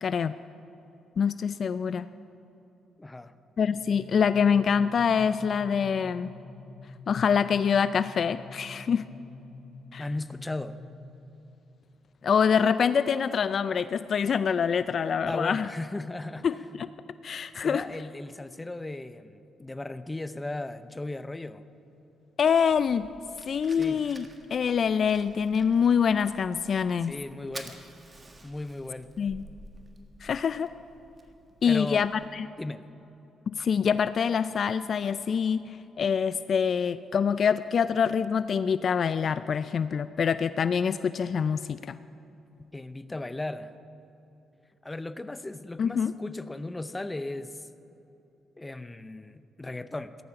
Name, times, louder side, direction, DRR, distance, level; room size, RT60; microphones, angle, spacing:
voice 1, 0.0-0.3 1.2-2.1 3.6-6.3 7.1-9.1 9.9-10.0 12.2-15.7 16.4-16.9 17.2-17.8 22.4-23.1 23.5-24.2 24.5-27.1 29.2-29.4 30.2-30.7 31.6-32.5 33.5-42.0 45.8-46.1, left 7 dB, 50° left, 14 dB, 0.4 m, -25 dB
voice 2, 3.0-3.4 10.0-10.8 15.3-16.5 17.6-21.6 23.7-24.1 27.0-27.8 28.4-29.1 31.6-32.0 32.6-32.8 42.7-43.7 44.8-47.7 48.6-50.2, left 2 dB, 15° left, 13 dB, 0.6 m, -36 dB
sound 1, 3.7-11.3, left 3 dB, 70° left, 3.3 m, -47 dB
Fire, 22.6-32.3, right 2 dB, 25° right, 1.6 m, -50 dB
17.0 x 13.5 x 5.8 m, 3.0 s
cardioid pair, 90°, 0 cm